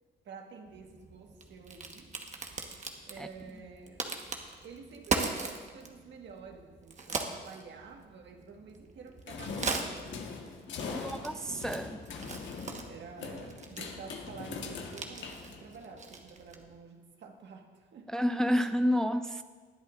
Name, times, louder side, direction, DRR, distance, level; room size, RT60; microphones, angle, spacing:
voice 1, 0.2-2.1 3.1-4.1 4.6-10.2 10.8-11.1 12.1-12.3 12.8-18.1, right 5 dB, 65° right, 3 dB, 1.6 m, -49 dB
Crack, 0.7-16.8, right 3 dB, 35° right, 1.3 m, -40 dB
sound 1, 9.3-16.0, left 4 dB, 70° left, 1.5 m, -41 dB
voice 2, 11.0-12.0 18.1-19.4, equal, 5° left, 10 dB, 0.4 m, -29 dB
19.5 x 10.0 x 2.6 m, 1.5 s
cardioid pair, 90°, 20 cm